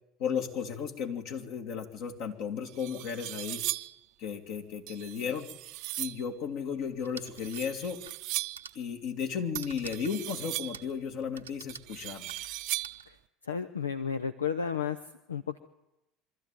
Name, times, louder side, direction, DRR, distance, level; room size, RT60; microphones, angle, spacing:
voice 1, 0.2-3.6 4.2-5.5 6.0-8.0 8.7-12.3, left 7 dB, 60° left, 3 dB, 2.8 m, -34 dB
sound 1, 2.1-2.2 2.7-4.0 4.9-6.3 7.3-8.7 9.5-10.9 11.7-13.1, right 17 dB, 55° right, 0.7 m, -38 dB
sound 2, 7.0-8.2 8.5-8.9 9.5-10.2 10.7-11.0 11.4-13.0, right 7 dB, 85° right, 1.0 m, -47 dB
voice 2, 13.4-15.0 15.3-15.6, left 7 dB, 85° left, 11 dB, 0.7 m, -32 dB
24.5 x 13.5 x 9.3 m, 0.92 s
figure-of-eight pair, 70°, 0 cm